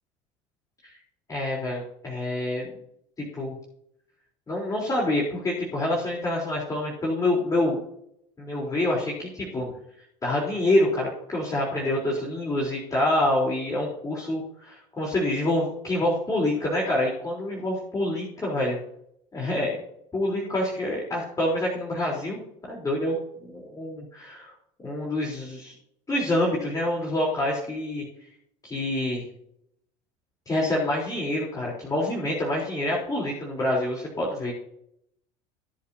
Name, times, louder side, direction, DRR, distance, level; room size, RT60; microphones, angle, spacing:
voice 1, 1.3-2.7 3.2-3.5 4.5-7.8 8.4-9.7 10.2-18.8 19.3-19.8 20.1-22.4 22.7-23.2 23.4-24.5 24.8-25.7 26.1-28.0 28.6-29.2 30.5-34.5, left 1 dB, 20° left, -3 dB, 4.3 m, -26 dB
20.0 x 7.4 x 3.0 m, 0.74 s
hypercardioid pair, 85°, 16 cm